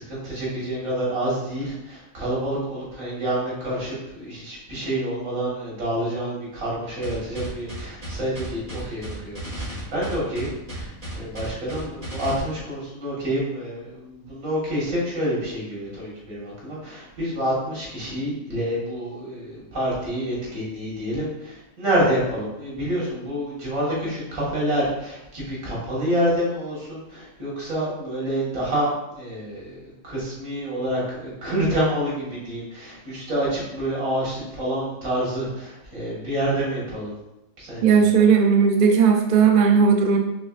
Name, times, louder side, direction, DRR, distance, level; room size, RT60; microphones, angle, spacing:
voice 1, 0.0-37.1 37.6-38.1, right 1 dB, 85° right, -7 dB, 2.2 m, -28 dB
sound 1, 7.0-12.4, equal, 30° right, 1.5 m, -34 dB
voice 2, 37.8-40.2, right 6 dB, 60° right, 3 dB, 0.6 m, -16 dB
5.4 x 3.2 x 2.5 m, 0.91 s
omnidirectional pair, 1.4 m